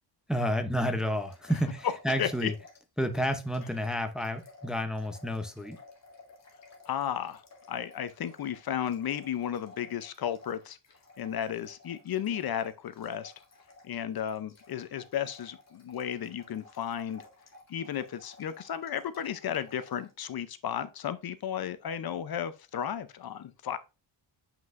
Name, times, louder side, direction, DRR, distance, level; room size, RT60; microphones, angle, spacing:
voice 1, 0.3-2.5 3.0-5.8, equal, ahead, 0.6 m, -30 dB
sound 1, 1.1-2.9 3.1-20.1, left 3 dB, 35° left, 1.9 m, -55 dB
voice 2, 2.2-2.5 6.9-7.4 7.7-10.8 11.2-13.3 13.8-17.3 17.7-23.8, left 9 dB, 55° left, 0.6 m, -34 dB
7.5 x 6.0 x 2.5 m
wide cardioid pair, 165°, 45 cm